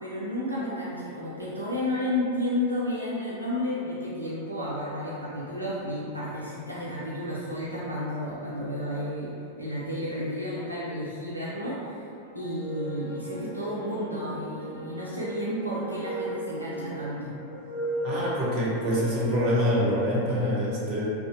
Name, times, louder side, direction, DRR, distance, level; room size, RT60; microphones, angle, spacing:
voice 1, 0.0-12.0 12.3-17.3, left 1 dB, 85° right, -8 dB, 0.4 m, -32 dB
sound 1, 12.3-20.5, equal, 85° left, 0.5 m, -36 dB
voice 2, 18.0-21.0, equal, 45° right, -5 dB, 0.7 m, -25 dB
2.5 x 2.3 x 2.6 m, 2.6 s
figure-of-eight pair, 90°, 0 cm